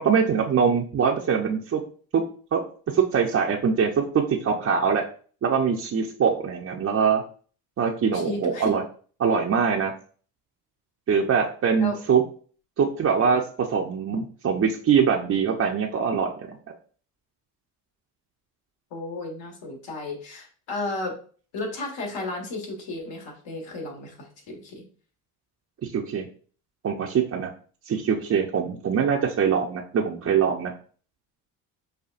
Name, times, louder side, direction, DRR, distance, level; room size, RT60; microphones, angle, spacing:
voice 1, 0.0-1.8 2.1-2.2 2.5-2.6 2.9-5.0 5.4-7.2 7.8-8.8 9.2-9.9 11.1-12.2 12.8-16.6 25.9-26.3 26.8-27.5 27.9-30.7, right 6 dB, 30° right, -1 dB, 0.6 m, -23 dB
voice 2, 8.1-8.8 11.8-12.0 18.9-21.1 21.5-24.8, left 2 dB, 65° left, 1 dB, 1.6 m, -33 dB
5.5 x 2.4 x 2.4 m, 0.42 s
hypercardioid pair, 65°, 48 cm